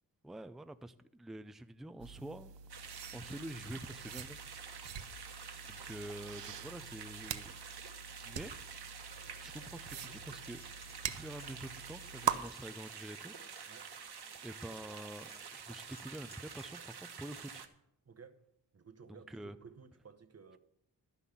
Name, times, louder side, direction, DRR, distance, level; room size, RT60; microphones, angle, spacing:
voice 1, 0.2-2.5 3.1-5.3 5.6-7.5 8.2-8.5 9.4-10.7 11.0-13.7 14.4-17.7 19.1-19.6, right 1 dB, ahead, 0.4 m, -47 dB
sound 1, 2.0-12.4, right 9 dB, 80° right, 0.8 m, -43 dB
sound 2, 2.7-17.7, right 6 dB, 60° right, 1.2 m, -49 dB
Tap, 8.6-16.9, left 2 dB, 20° left, 1.2 m, -64 dB
voice 2, 18.0-18.4 18.7-20.6, right 5 dB, 35° right, 1.0 m, -55 dB
12.0 x 5.6 x 8.3 m
wide cardioid pair, 120°, 43 cm